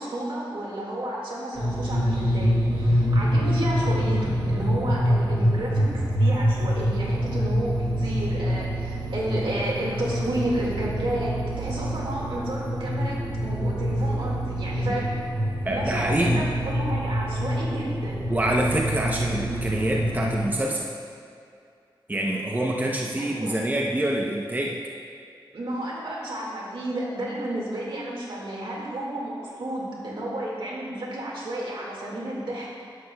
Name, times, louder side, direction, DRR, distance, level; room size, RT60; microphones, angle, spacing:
voice 1, 0.0-5.9 6.2-15.1 15.7-18.2 23.2-23.6 25.5-32.7, right 1 dB, 70° right, -4 dB, 2.0 m, -31 dB
sound 1, 1.6-20.5, equal, 85° right, 2.1 m, -26 dB
voice 2, 15.6-16.5 18.3-20.9 22.1-24.8, right 1 dB, 20° right, -1 dB, 0.7 m, -26 dB
11.0 x 8.5 x 2.3 m, 2.4 s
wide cardioid pair, 75°, 9 cm